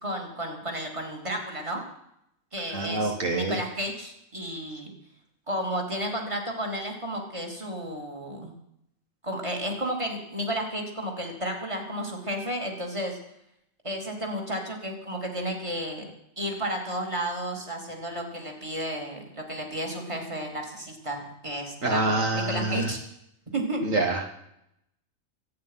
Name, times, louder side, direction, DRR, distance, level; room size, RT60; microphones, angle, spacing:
voice 1, 0.0-1.8 2.5-4.9 5.5-8.5 9.2-13.2 13.8-16.1 16.4-23.0 23.5-23.8, right 1 dB, 20° right, 1 dB, 3.2 m, -32 dB
voice 2, 2.7-3.6 21.8-22.9 23.8-24.3, right 2 dB, 65° right, 2 dB, 2.1 m, -26 dB
24.5 x 9.4 x 5.7 m, 0.78 s
omnidirectional pair, 1.4 m